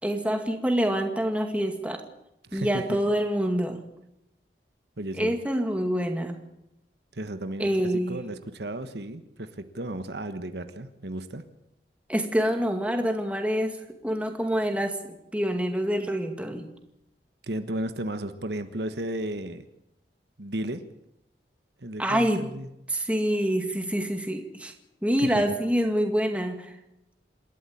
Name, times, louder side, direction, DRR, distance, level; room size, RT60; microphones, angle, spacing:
voice 1, 0.0-2.0 2.5-3.8 5.2-6.4 7.6-8.2 12.1-13.8 14.0-16.7 22.0-22.5 22.9-24.7 25.0-26.7, equal, 5° right, 4 dB, 2.2 m, -26 dB
voice 2, 2.4-3.0 5.0-5.3 7.1-11.4 17.4-19.7 20.4-20.8 21.8-22.7 25.2-25.4, right 1 dB, 70° right, 9 dB, 1.3 m, -34 dB
27.0 x 13.0 x 8.6 m, 0.84 s
head